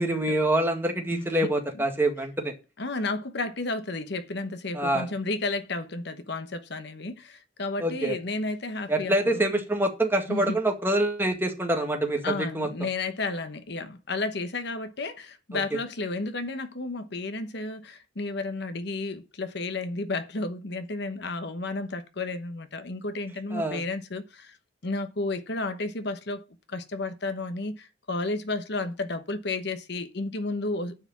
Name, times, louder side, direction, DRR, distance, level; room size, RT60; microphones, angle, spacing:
voice 1, 0.0-2.5 4.7-5.1 7.8-8.2 8.9-12.7 15.5-15.6 23.5-23.8, right 1 dB, 10° right, 1.9 m, -26 dB
voice 2, 1.1-1.5 2.8-9.4 10.3-10.6 12.2-24.6 24.8-26.4 26.7-30.9, left 2 dB, 60° left, 1.1 m, -32 dB
9.6 x 4.9 x 7.4 m
head